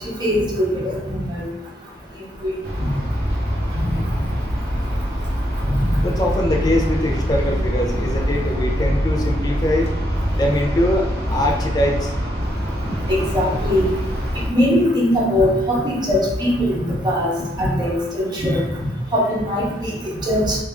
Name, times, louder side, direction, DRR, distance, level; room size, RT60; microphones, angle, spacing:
voice 1, 0.2-1.5 2.4-2.5 3.9-4.0 13.1-13.9 14.5-18.6 19.1-20.6, equal, 25° right, -5 dB, 0.9 m, -20 dB
sound 1, 2.6-14.5, equal, 60° right, 0.8 m, -23 dB
voice 2, 6.0-9.9 10.4-12.1, left 1 dB, 20° left, 0 dB, 0.4 m, -22 dB
3.3 x 2.4 x 3.5 m, 1.0 s
head